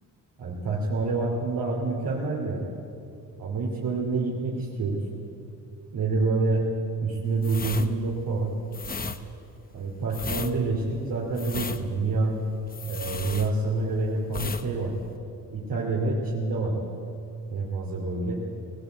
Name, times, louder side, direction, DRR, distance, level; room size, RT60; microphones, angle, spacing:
voice 1, 0.4-2.6 3.4-5.0 5.9-6.6 7.0-8.5 9.7-12.3 12.9-14.9 15.5-16.8 17.5-18.4, right 3 dB, 80° right, -4 dB, 2.9 m, -27 dB
sound 1, 7.4-14.0 14.3-14.7 14.9-15.2, left 5 dB, 25° left, 0.8 m, -35 dB
19.0 x 18.5 x 8.1 m, 2.7 s
wide cardioid pair, 145°, 33 cm